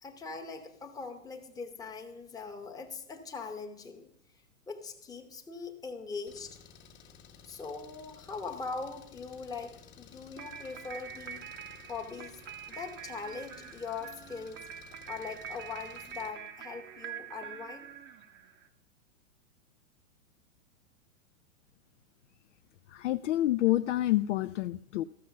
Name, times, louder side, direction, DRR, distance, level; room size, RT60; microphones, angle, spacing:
voice 1, 0.0-4.1 4.7-6.6 7.4-11.4 11.9-12.4 12.7-14.7 15.1-17.9, left 4 dB, 10° left, 2 dB, 1.0 m, -41 dB
Engine, 6.3-16.3, left 7 dB, 25° left, 1.3 m, -55 dB
sound 1, 10.4-18.7, right 9 dB, 25° right, 0.8 m, -45 dB
voice 2, 22.9-25.0, left 15 dB, 55° left, 11 dB, 0.5 m, -28 dB
14.0 x 6.2 x 5.7 m, 0.76 s
hypercardioid pair, 135°, 43 cm